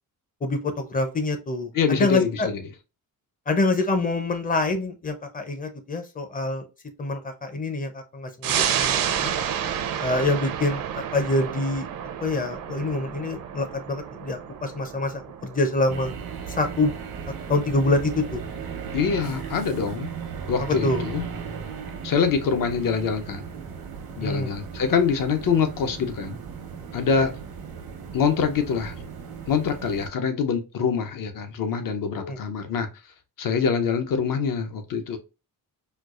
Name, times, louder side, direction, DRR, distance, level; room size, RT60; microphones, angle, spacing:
voice 1, 0.4-2.5 3.5-6.6 7.0-9.3 10.0-10.8 11.1-11.9 12.2-15.1 15.4-16.1 16.6-16.9 17.5-18.4 20.8-21.0 24.2-24.5 27.2-27.3 32.2-32.4, left 2 dB, 25° left, 0.5 m, -26 dB
voice 2, 1.7-2.7 18.9-20.1 20.5-21.3 22.0-23.4 24.2-26.4 26.9-27.3 28.1-28.9 29.5-32.9 33.4-35.2, left 6 dB, 65° left, 0.7 m, -24 dB
sound 1, 8.4-19.4 19.8-19.9, right 9 dB, 65° right, 0.5 m, -31 dB
sound 2, 15.9-30.1, right 6 dB, 90° right, 0.9 m, -36 dB
4.4 x 2.4 x 2.4 m
wide cardioid pair, 150°, 36 cm